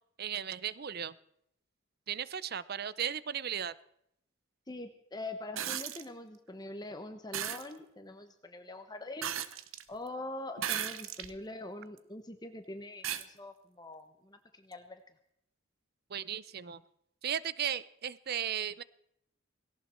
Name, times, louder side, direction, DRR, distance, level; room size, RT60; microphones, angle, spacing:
voice 1, 0.2-1.1 2.1-3.7 16.1-16.8 17.2-18.8, right 9 dB, 50° right, 18 dB, 0.6 m, -36 dB
voice 2, 4.7-9.3 9.9-15.0, left 2 dB, 20° left, 7 dB, 1.1 m, -44 dB
sound 1, 5.6-6.1 7.3-7.7 9.2-9.8 10.6-11.3 12.0-12.1 13.0-13.3 14.7-14.8, right 9 dB, 80° right, 1.0 m, -35 dB
18.0 x 17.5 x 4.4 m, 0.74 s
head